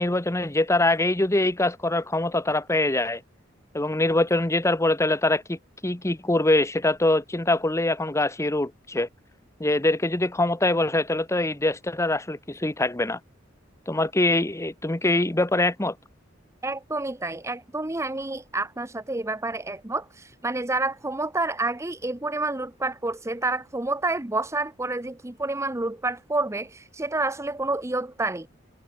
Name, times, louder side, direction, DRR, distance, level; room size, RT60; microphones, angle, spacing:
voice 1, 0.0-3.2 3.7-9.1 9.6-13.2 13.9-15.9, left 2 dB, 15° left, 1.0 m, -23 dB
voice 2, 16.6-28.5, right 2 dB, 15° right, 0.8 m, -29 dB
head